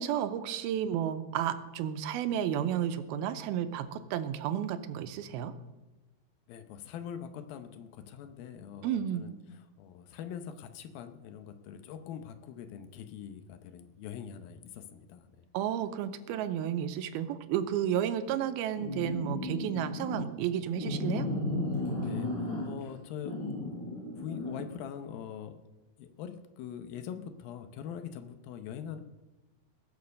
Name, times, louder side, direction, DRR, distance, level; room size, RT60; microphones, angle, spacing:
voice 1, 0.0-5.5 8.8-9.2 15.5-21.3, right 10 dB, 85° right, 11 dB, 2.6 m, -32 dB
voice 2, 6.5-15.5 22.0-22.3 22.6-23.5 24.2-25.6 26.0-29.0, left 8 dB, 80° left, 9 dB, 2.6 m, -43 dB
sound 1, 18.8-20.3 20.8-22.9 23.3-24.6, left 2 dB, 50° left, 7.4 m, -34 dB
20.0 x 6.9 x 6.5 m, 1.1 s
omnidirectional pair, 4.4 m